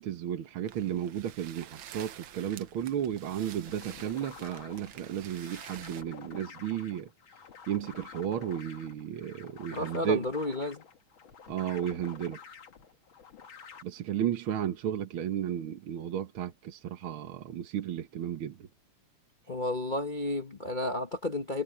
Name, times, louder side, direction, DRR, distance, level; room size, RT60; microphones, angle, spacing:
voice 1, 0.0-7.1 7.7-10.3 11.5-12.4 13.8-18.7, right 10 dB, 55° right, 1.6 m, -33 dB
sound 1, 0.7-6.0, right 11 dB, 75° right, 1.1 m, -49 dB
sound 2, 3.7-13.8, left 6 dB, 45° left, 2.2 m, -49 dB
voice 2, 9.7-10.8 19.5-21.6, left 2 dB, 75° left, 0.4 m, -32 dB
omnidirectional pair, 3.4 m